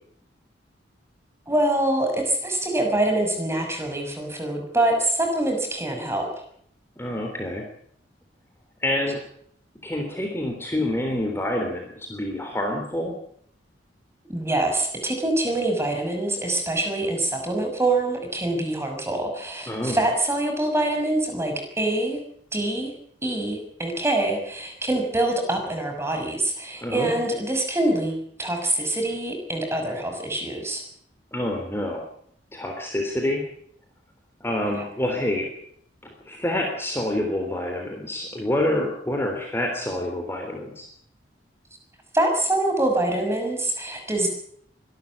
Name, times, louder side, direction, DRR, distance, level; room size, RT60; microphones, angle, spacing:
voice 1, 1.5-6.3 14.3-22.2 22.5-22.9 23.2-30.8 42.1-44.3, right 1 dB, 15° right, 4 dB, 6.2 m, -25 dB
voice 2, 7.0-7.6 8.8-9.2 9.8-13.1 19.7-20.0 26.8-27.2 31.3-32.1 32.5-33.4 34.4-35.5 36.3-40.9, left 1 dB, 15° left, 2 dB, 3.5 m, -27 dB
24.5 x 13.0 x 8.3 m, 0.64 s
head